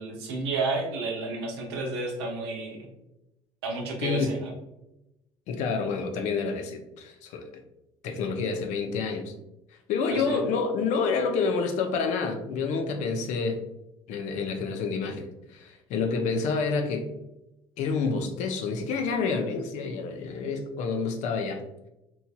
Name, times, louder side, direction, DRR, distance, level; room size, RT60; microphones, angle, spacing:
voice 1, 0.0-2.9 3.6-4.5 10.1-10.4, right 3 dB, 90° right, 0 dB, 0.7 m, -31 dB
voice 2, 5.5-7.5 8.0-9.3 9.9-13.6 14.1-17.1 17.8-21.6, left 4 dB, 65° left, 5 dB, 0.5 m, -28 dB
2.9 x 2.7 x 2.2 m, 0.92 s
supercardioid pair, 75°, 13 cm